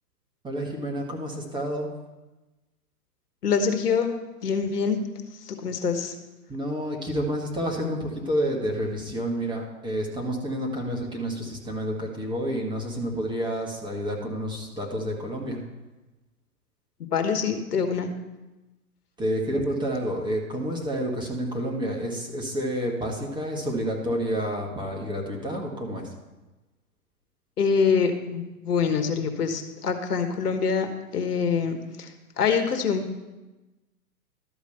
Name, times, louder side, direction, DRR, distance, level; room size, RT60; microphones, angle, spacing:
voice 1, 0.4-1.9 6.5-15.6 19.2-26.1, equal, 10° right, -1 dB, 1.5 m, -29 dB
voice 2, 3.4-4.2 4.4-5.0 5.4-6.1 17.1-18.1 27.6-33.0, left 6 dB, 75° left, 7 dB, 1.4 m, -25 dB
12.0 x 5.1 x 6.7 m, 1.1 s
hypercardioid pair, 120°, 47 cm